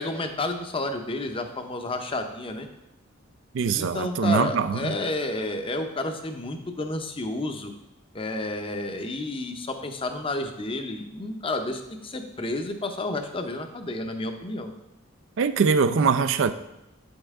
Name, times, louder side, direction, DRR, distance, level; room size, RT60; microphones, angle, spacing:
voice 1, 0.0-2.7 3.7-7.8 8.1-14.7, left 2 dB, 25° left, 6 dB, 0.7 m, -31 dB
voice 2, 3.5-4.9 15.4-16.5, right 5 dB, 65° right, 12 dB, 0.4 m, -22 dB
9.0 x 5.5 x 3.6 m, 0.91 s
head